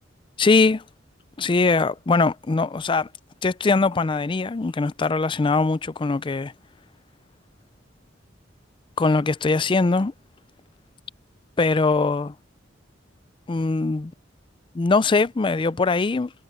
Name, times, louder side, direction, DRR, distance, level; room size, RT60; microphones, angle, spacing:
voice 1, 0.4-0.8 1.4-3.1 3.4-6.5 9.0-10.1 11.6-12.3 13.5-14.1 14.7-16.3, left 3 dB, 25° left, 0.4 m, -21 dB
head